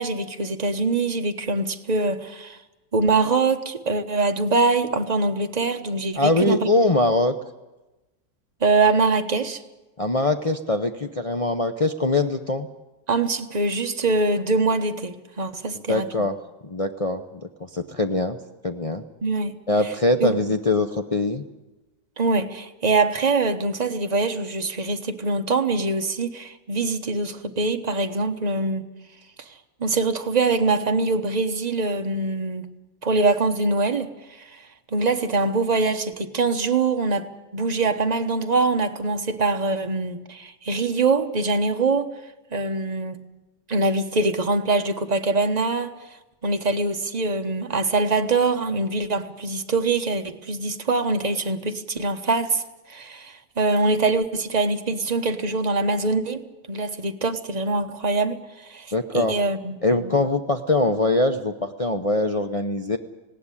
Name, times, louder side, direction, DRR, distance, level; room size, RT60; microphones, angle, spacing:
voice 1, 0.0-2.6 2.9-6.7 8.6-9.6 13.1-16.0 19.2-19.6 20.2-20.4 22.2-28.8 29.8-32.7 33.0-34.1 34.9-37.3 37.5-42.1 42.5-43.2 43.7-45.9 46.4-52.6 52.9-58.4 58.7-58.9 59.1-60.1, right 3 dB, 30° right, 1.0 m, -23 dB
voice 2, 6.2-7.4 10.0-12.7 15.9-16.4 16.6-18.4 18.6-19.0 19.7-21.4 58.9-59.4 59.8-63.0, left 2 dB, 65° left, 0.3 m, -22 dB
19.0 x 17.0 x 9.8 m
omnidirectional pair, 1.9 m